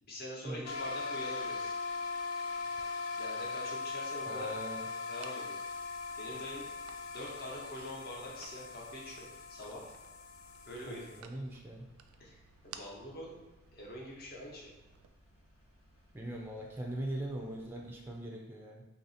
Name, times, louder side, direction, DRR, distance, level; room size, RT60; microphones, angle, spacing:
voice 1, 0.0-1.7 3.2-4.5 5.1-5.6 6.2-6.7 7.1-9.8 10.7-11.1 12.2-13.4 13.7-14.7, left 1 dB, 50° left, -3 dB, 0.9 m, -45 dB
sound 1, 0.7-11.2, left 4 dB, 85° left, 0.3 m, -40 dB
sound 2, 2.6-15.1, right 8 dB, 90° right, 0.3 m, -59 dB
voice 2, 4.3-4.9 10.9-11.9 16.1-18.9, right 1 dB, 10° right, -1 dB, 0.3 m, -41 dB
Engine, 5.6-18.3, equal, 65° left, 1.1 m, -64 dB
2.8 x 2.6 x 4.0 m, 1.0 s
head